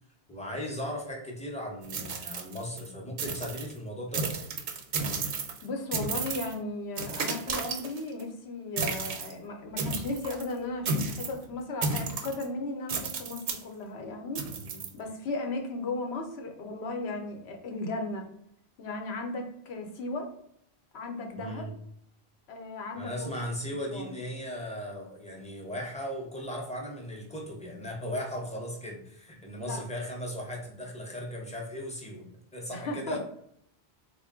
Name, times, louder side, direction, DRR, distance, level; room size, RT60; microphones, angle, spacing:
voice 1, 0.3-4.5 14.6-14.9 21.4-21.7 23.0-32.2 32.5-33.2, equal, 10° left, -1 dB, 0.6 m, -37 dB
sound 1, 1.8-2.9 3.2-3.7 4.1-5.6 5.9-6.5 7.0-8.2 8.8-9.3 9.8-10.4 10.8-11.4 11.8-12.4 12.9-13.6 14.3-14.9, right 4 dB, 55° right, 0.6 m, -33 dB
voice 2, 5.6-14.5 14.9-18.3 18.8-20.3 20.9-21.7 22.5-23.3 23.9-24.2 29.6-29.8 32.7-33.2, left 2 dB, 80° left, 3 dB, 1.0 m, -36 dB
3.7 x 2.2 x 3.5 m, 0.74 s
omnidirectional pair, 1.1 m